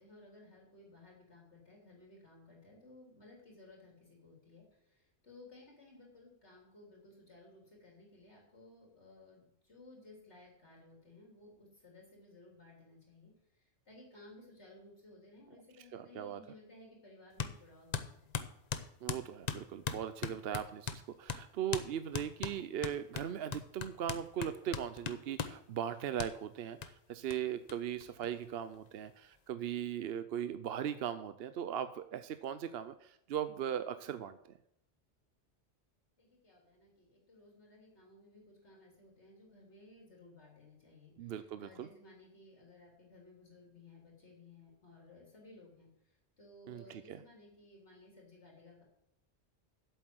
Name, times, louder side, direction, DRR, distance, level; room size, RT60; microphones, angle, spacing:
voice 1, 0.0-18.4 36.2-45.9 46.4-48.8, left 2 dB, 70° left, -2 dB, 3.5 m, -58 dB
voice 2, 15.9-16.4 19.0-34.4 41.2-41.9 46.7-47.2, right 9 dB, 65° right, 11 dB, 0.8 m, -39 dB
sound 1, 17.4-17.6 17.9-21.0 21.3-21.4 21.7-21.9 22.1-25.6 26.2-26.3 26.8-26.9 27.3-27.4 27.7-27.8 28.0-28.7, left 6 dB, 45° left, 0.7 m, -39 dB
8.2 x 7.9 x 7.7 m, 0.75 s
omnidirectional pair, 1.2 m